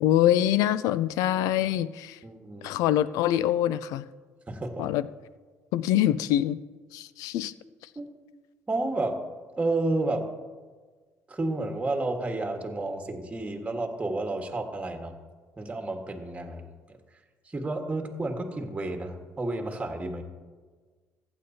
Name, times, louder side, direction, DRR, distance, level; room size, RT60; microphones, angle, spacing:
voice 1, 0.0-2.2 2.6-4.0 4.8-5.1 5.7-6.6 6.9-7.5, left 12 dB, 85° left, 17 dB, 0.4 m, -24 dB
voice 2, 2.2-2.8 4.5-4.9 7.9-8.1 8.7-9.2 9.6-10.2 11.3-15.1 15.6-17.0 17.4-20.2, right 2 dB, 20° right, 3 dB, 1.5 m, -31 dB
15.0 x 9.0 x 2.8 m, 1.4 s
cardioid pair, 85°, 6 cm